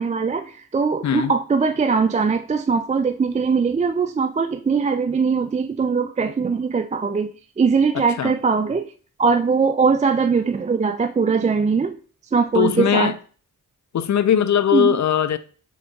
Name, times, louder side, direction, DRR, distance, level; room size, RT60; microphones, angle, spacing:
voice 1, 0.0-7.3 7.6-8.9 9.2-12.0 12.3-13.2 14.7-15.0, right 5 dB, 20° right, 0.3 m, -21 dB
voice 2, 7.9-8.4 12.5-13.1 13.9-15.4, left 9 dB, 50° left, 0.5 m, -20 dB
3.8 x 3.4 x 3.8 m
supercardioid pair, 45°, 36 cm